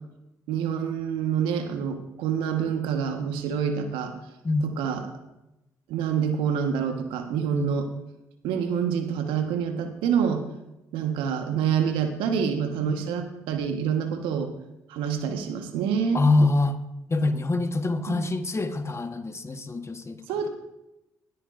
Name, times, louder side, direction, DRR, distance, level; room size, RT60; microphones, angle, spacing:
voice 1, 0.5-4.1 4.6-5.1 5.9-7.9 8.4-10.4 10.9-14.5 14.9-16.2 18.1-18.3 20.3-20.5, right 7 dB, 80° right, 6 dB, 1.4 m, -27 dB
voice 2, 4.4-4.8 7.5-7.7 12.8-12.9 16.1-16.8 17.1-20.2, left 2 dB, 30° left, 7 dB, 1.4 m, -25 dB
19.5 x 13.5 x 2.6 m, 0.92 s
hypercardioid pair, 40°, 9 cm